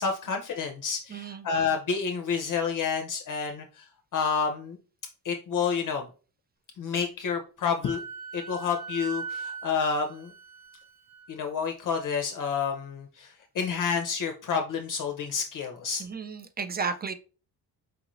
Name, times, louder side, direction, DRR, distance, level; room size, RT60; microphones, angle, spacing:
voice 1, 0.0-4.8 5.2-6.1 6.8-8.0 8.3-10.3 11.3-16.0, left 6 dB, 50° left, 4 dB, 0.6 m, -29 dB
voice 2, 1.1-1.5 16.0-17.1, right 5 dB, 25° right, 10 dB, 0.3 m, -33 dB
Wind instrument woodwind instrument, 7.8-11.3, right 5 dB, 85° right, 1.1 m, -40 dB
4.7 x 2.5 x 3.0 m, 0.36 s
cardioid pair, 115°, 40 cm